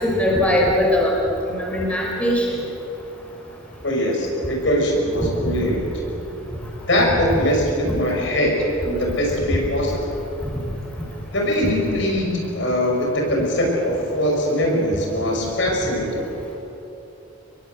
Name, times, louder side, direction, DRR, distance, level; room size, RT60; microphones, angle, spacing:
voice 1, 0.0-1.1 1.5-2.4 5.4-5.5, left 1 dB, 5° left, -3 dB, 5.7 m, -20 dB
voice 2, 3.8-5.8 6.9-8.6 8.8-9.9 11.3-16.2, equal, 65° left, 0 dB, 5.9 m, -21 dB
26.5 x 22.0 x 8.0 m, 3.0 s
head